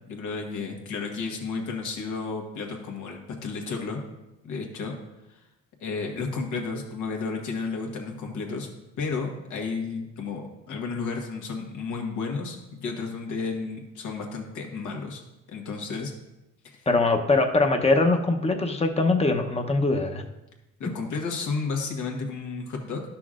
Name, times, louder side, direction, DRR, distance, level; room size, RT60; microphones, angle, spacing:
voice 1, 0.1-4.0 4.4-4.9 5.3-5.4 5.8-8.7 9.0-15.2 15.5-16.1 16.6-16.9 20.8-23.0, left 4 dB, 80° left, 2 dB, 1.4 m, -32 dB
voice 2, 16.9-20.2, left 3 dB, 20° left, 4 dB, 0.8 m, -22 dB
11.5 x 6.0 x 2.5 m, 0.95 s
cardioid pair, 90°, 30 cm